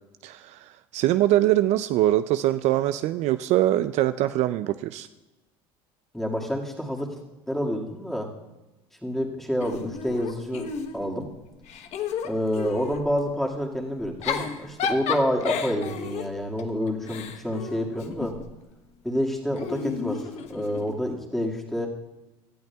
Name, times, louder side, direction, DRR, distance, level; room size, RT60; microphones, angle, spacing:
voice 1, 0.2-0.7 0.9-5.1, right 14 dB, 55° right, 11 dB, 0.4 m, -23 dB
voice 2, 6.1-7.1 7.5-8.3 9.0-10.7 10.9-11.3 12.2-18.3 19.0-21.9, equal, ahead, -1 dB, 2.0 m, -28 dB
Giggle / Chuckle chortle, 9.6-11.2 11.6-13.1 14.0-18.5 19.6-21.0, left 7 dB, 55° left, 1.0 m, -32 dB
17.5 x 12.0 x 2.3 m, 1.1 s
supercardioid pair, 100°, 14 cm